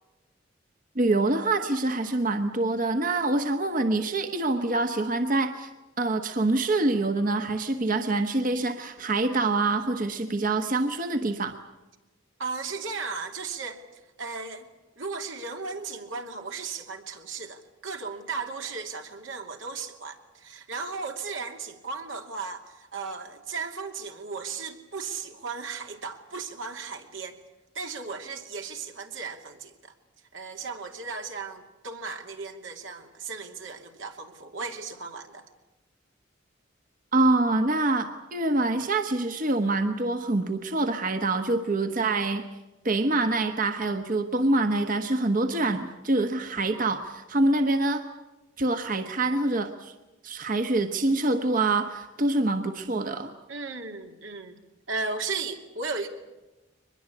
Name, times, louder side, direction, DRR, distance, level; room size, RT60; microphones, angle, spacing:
voice 1, 0.9-5.7 6.0-11.6 37.1-42.4 42.8-48.0 48.6-49.9 50.2-53.3, right 2 dB, 45° right, 7 dB, 1.1 m, -25 dB
voice 2, 12.4-13.8 14.2-14.7 15.0-27.4 27.7-29.9 30.3-35.5 53.5-54.6 54.9-56.1, right 4 dB, 85° right, 4 dB, 2.7 m, -36 dB
23.0 x 21.0 x 8.5 m, 1.1 s
head